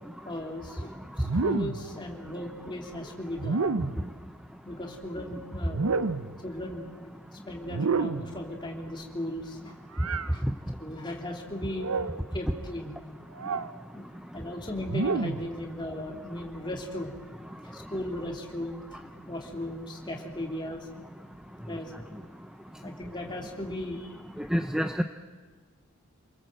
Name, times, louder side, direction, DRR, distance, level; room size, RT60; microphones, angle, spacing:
voice 1, 0.2-3.7 4.6-6.2 6.4-7.1 7.5-9.7 10.3-10.4 10.8-12.0 12.3-12.9 13.9-14.1 14.3-17.1 17.6-18.8 19.3-20.9 21.7-22.1 22.8-24.2, left 1 dB, 20° left, 0 dB, 3.2 m, -37 dB
sound 1, 1.2-1.9 3.4-4.1 5.7-6.4 7.7-8.4 10.0-10.3 11.7-12.2 13.4-13.7 14.8-15.5, right 4 dB, 85° right, 0.8 m, -29 dB
voice 2, 24.4-25.0, equal, 5° right, 7 dB, 0.7 m, -27 dB
28.5 x 21.0 x 7.8 m, 1.5 s
head